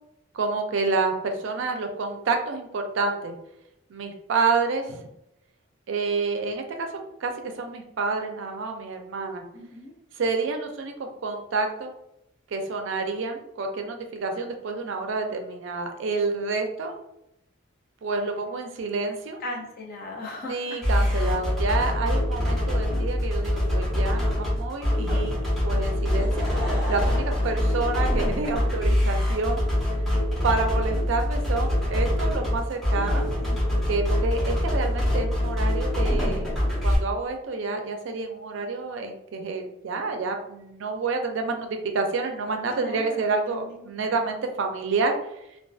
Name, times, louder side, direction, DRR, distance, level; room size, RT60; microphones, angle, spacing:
voice 1, 0.3-3.3 3.9-5.0 5.9-6.9 7.2-9.4 10.2-11.9 12.5-16.9 18.0-19.4 20.5-25.4 25.6-26.5 26.9-29.6 30.4-33.3 33.9-36.5 36.8-45.2, right 3 dB, 65° right, 5 dB, 0.4 m, -28 dB
voice 2, 9.5-9.9 19.4-20.8 33.4-33.6 42.8-43.2 43.5-44.2, left 1 dB, 45° left, 0 dB, 0.5 m, -38 dB
sound 1, 20.8-37.0, left 1 dB, ahead, 0.8 m, -24 dB
Laughter / Crowd, 26.0-28.6 29.3-29.4, equal, 25° right, 1.0 m, -36 dB
2.4 x 2.3 x 2.3 m, 0.83 s
head